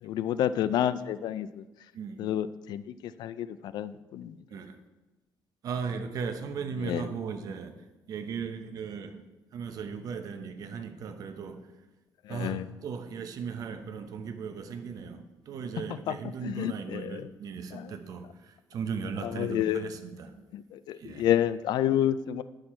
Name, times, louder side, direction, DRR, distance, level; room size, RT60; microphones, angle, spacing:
voice 1, 0.0-1.6 2.2-4.4 6.8-7.0 12.2-12.7 16.1-16.2 16.4-17.3 17.7-17.9 19.2-19.9 20.5-22.4, left 11 dB, 75° left, 15 dB, 0.4 m, -29 dB
voice 2, 5.6-7.8 8.1-9.3 9.5-11.7 12.3-20.4 20.9-21.3, right 6 dB, 55° right, 7 dB, 0.8 m, -37 dB
10.5 x 6.4 x 4.3 m, 1.1 s
cardioid pair, 160°, 7 cm